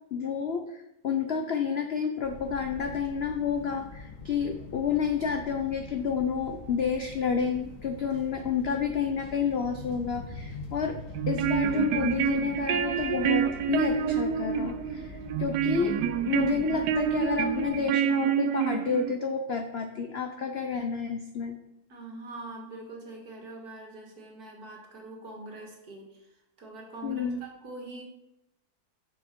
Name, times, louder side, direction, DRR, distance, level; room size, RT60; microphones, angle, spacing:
voice 1, 0.1-11.0 11.3-16.0 16.3-21.6 27.0-27.4, left 6 dB, 75° left, 6 dB, 0.5 m, -30 dB
sound 1, 2.2-17.8, left 3 dB, 50° left, 1.5 m, -44 dB
sound 2, 11.1-19.2, right 8 dB, 80° right, 1.1 m, -28 dB
voice 2, 21.9-26.3 26.6-28.0, right 2 dB, 60° right, 0 dB, 2.2 m, -43 dB
7.0 x 6.5 x 5.2 m, 0.87 s
omnidirectional pair, 1.8 m